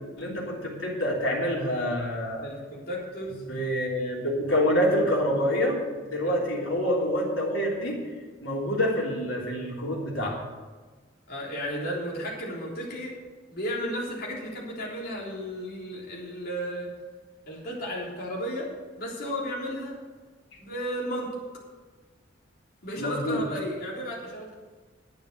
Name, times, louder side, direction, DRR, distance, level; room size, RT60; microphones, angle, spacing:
voice 1, 0.2-2.5 3.4-8.1 8.4-10.4 22.9-23.4, equal, 90° left, -2 dB, 3.3 m, -27 dB
voice 2, 2.4-3.4 6.2-6.4 11.3-13.2 13.5-16.9 17.5-18.7 19.0-20.0 20.6-21.3 22.8-24.5, equal, 50° left, -4 dB, 3.7 m, -34 dB
11.0 x 9.2 x 6.7 m, 1.4 s
head